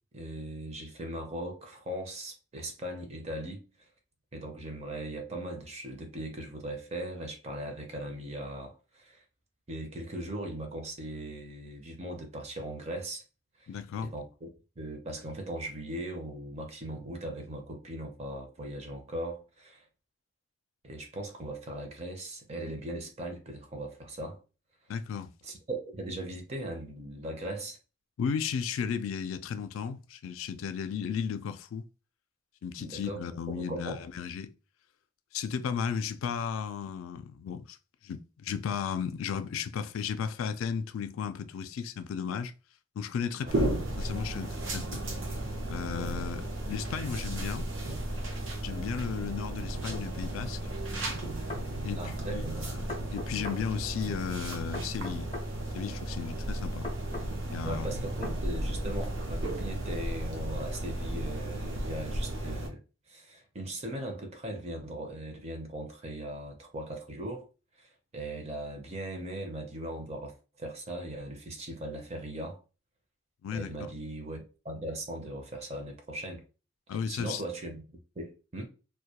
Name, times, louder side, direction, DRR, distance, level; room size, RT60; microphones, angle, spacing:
voice 1, 0.1-3.6 4.3-9.2 9.7-13.2 13.6-13.7 14.0-14.5 14.8-19.8 20.8-24.4 25.4-27.8 32.8-33.2 33.5-34.0 43.4-43.5 45.8-46.3 51.9-52.7 57.6-62.8 63.1-67.5 67.8-72.6 73.5-76.4 77.1-77.8 78.2-78.7, right 1 dB, 30° right, 0.5 m, -39 dB
voice 2, 13.7-14.1 24.9-25.3 28.2-31.9 32.6-34.5 35.3-37.8 38.0-42.5 43.0-43.6 44.0-45.0 45.7-47.7 48.6-50.6 51.8-52.4 52.7-55.3 55.7-56.9 57.5-57.9 73.4-73.9 76.9-77.4, left 7 dB, 85° left, 0.3 m, -34 dB
sound 1, 43.5-62.7, right 1 dB, 70° right, 0.6 m, -34 dB
sound 2, 49.9-50.1 51.2-51.7 52.9-53.6 54.7-55.5 56.8-57.3 58.2-58.4, left 3 dB, 30° left, 0.5 m, -39 dB
2.2 x 2.1 x 2.8 m
head